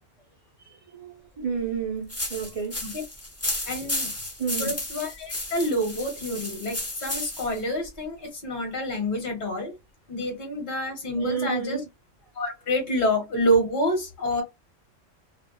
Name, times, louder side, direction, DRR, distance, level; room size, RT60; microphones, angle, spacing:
voice 1, 0.9-2.8 3.8-3.9 4.4-4.8 11.1-11.9, right 6 dB, 70° right, 0.3 m, -31 dB
sound 1, 2.1-7.6, left 1 dB, 20° left, 0.4 m, -33 dB
voice 2, 3.7-4.1 4.6-9.7 10.1-11.8 12.3-14.4, equal, 45° left, 0.9 m, -27 dB
2.3 x 2.0 x 3.0 m
omnidirectional pair, 1.3 m